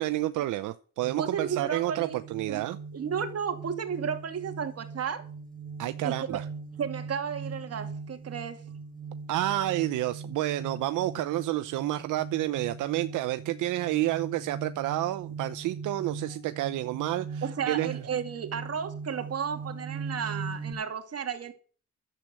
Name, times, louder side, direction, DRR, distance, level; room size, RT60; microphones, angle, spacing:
voice 1, 0.0-2.8 5.8-6.4 9.3-18.0, right 15 dB, 85° right, 0.7 m, -30 dB
sound 1, 1.0-20.7, right 5 dB, 30° right, 2.4 m, -40 dB
voice 2, 1.2-2.2 2.5-2.6 2.9-5.2 6.0-6.4 6.8-8.6 17.4-21.5, right 7 dB, 55° right, 2.5 m, -33 dB
12.0 x 7.8 x 8.9 m
cardioid pair, 90°, 30 cm